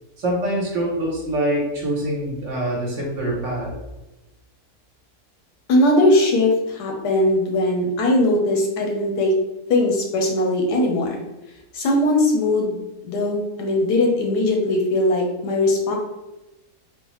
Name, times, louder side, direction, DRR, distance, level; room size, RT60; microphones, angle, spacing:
voice 1, 0.2-3.7, right 1 dB, 55° right, -3 dB, 1.2 m, -24 dB
voice 2, 5.7-9.3 9.7-11.2 11.7-16.0, left 1 dB, 85° left, 0 dB, 1.3 m, -20 dB
3.9 x 2.1 x 3.0 m, 0.98 s
omnidirectional pair, 1.7 m